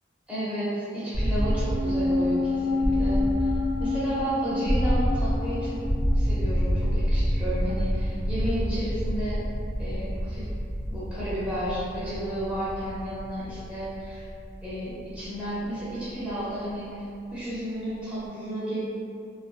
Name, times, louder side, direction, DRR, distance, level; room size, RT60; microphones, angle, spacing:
voice 1, 0.3-3.5 3.8-5.8 6.1-9.4 9.8-10.5 10.9-14.3 14.6-17.0 17.3-18.8, equal, 5° right, -11 dB, 0.8 m, -32 dB
sound 1, 1.1-17.0, equal, 35° right, 1.0 m, -28 dB
sound 2, 1.3-7.9 8.2-8.3, left 3 dB, 35° left, 0.3 m, -29 dB
3.1 x 2.6 x 2.2 m, 2.4 s
head